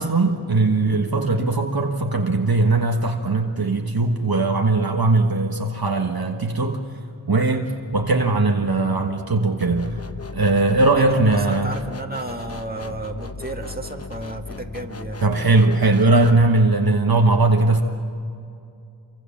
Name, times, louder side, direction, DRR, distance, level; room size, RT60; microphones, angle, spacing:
voice 1, 0.0-6.8 7.3-10.0 10.3-11.7 15.2-17.8, right 2 dB, 50° right, 2 dB, 1.5 m, -19 dB
sound 1, 9.6-16.5, left 4 dB, 30° left, 1.0 m, -37 dB
voice 2, 11.0-15.2, right 3 dB, 20° right, 3 dB, 2.2 m, -32 dB
28.0 x 24.5 x 7.3 m, 2.5 s
wide cardioid pair, 80°, 46 cm